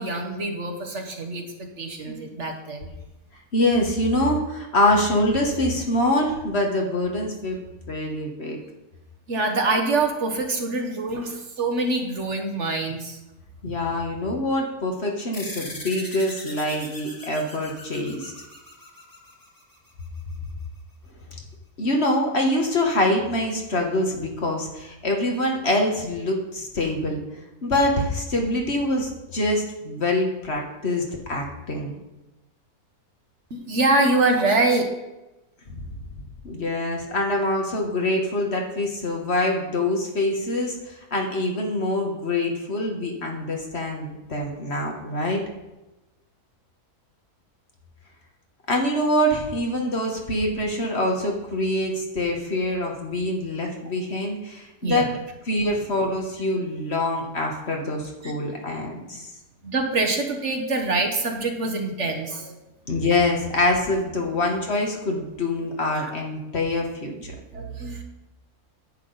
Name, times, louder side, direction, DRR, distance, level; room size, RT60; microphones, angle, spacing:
voice 1, 0.0-2.9 9.3-13.2 13.7-13.8 33.5-34.8 54.8-55.1 58.2-58.3 59.6-62.6 65.9-66.1 67.5-68.0, right 2 dB, 55° right, 3 dB, 1.3 m, -25 dB
voice 2, 3.5-7.6 7.9-8.6 13.6-18.3 21.8-27.2 27.6-31.9 35.7-35.8 36.4-45.4 48.7-55.1 55.4-59.3 62.9-67.3, left 1 dB, 45° left, 1 dB, 1.5 m, -25 dB
sound 1, 15.3-20.2, left 1 dB, 15° left, 1.5 m, -40 dB
10.5 x 8.4 x 4.0 m, 1.0 s
omnidirectional pair, 1.6 m